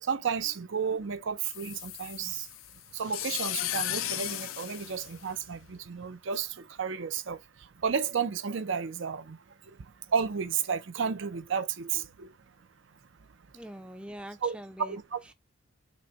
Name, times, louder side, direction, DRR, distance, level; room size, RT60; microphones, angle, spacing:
voice 1, 0.0-2.5 2.9-7.4 7.8-9.4 10.1-12.3 14.4-15.3, right 6 dB, 65° right, 0.5 m, -32 dB
sound 1, 1.4-5.8, left 13 dB, 80° left, 0.5 m, -36 dB
voice 2, 13.5-15.0, right 1 dB, 5° right, 0.5 m, -43 dB
6.1 x 2.2 x 3.9 m
head